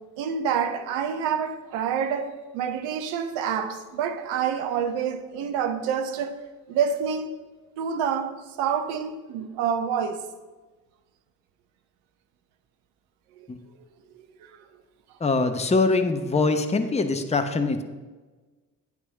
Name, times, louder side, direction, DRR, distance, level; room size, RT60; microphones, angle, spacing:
voice 1, 0.2-6.4 6.7-7.3 7.8-10.2 13.4-13.5 14.1-14.6, right 7 dB, 70° right, 1.0 m, -27 dB
voice 2, 15.2-17.8, left 3 dB, 15° left, 0.9 m, -23 dB
9.0 x 6.3 x 5.1 m
figure-of-eight pair, 45°, 48 cm